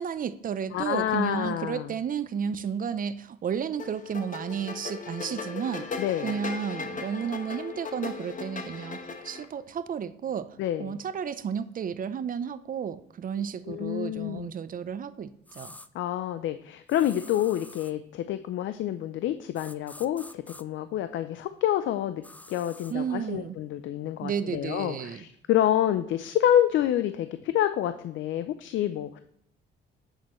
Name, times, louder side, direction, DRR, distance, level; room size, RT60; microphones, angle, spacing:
voice 1, 0.0-5.9 6.2-15.7 22.9-23.6 24.2-25.2, right 7 dB, 45° right, 14 dB, 0.6 m, -32 dB
voice 2, 0.7-1.9 6.0-6.3 10.6-11.0 13.3-14.5 15.9-29.2, left 11 dB, 75° left, 11 dB, 0.5 m, -28 dB
sound 1, 3.8-9.5, left 4 dB, 40° left, 1.0 m, -37 dB
sound 2, 15.5-15.9 16.9-18.0 19.5-20.6 22.2-22.9, left 2 dB, 10° left, 0.4 m, -47 dB
8.2 x 6.4 x 3.0 m, 0.74 s
cardioid pair, 90°, 20 cm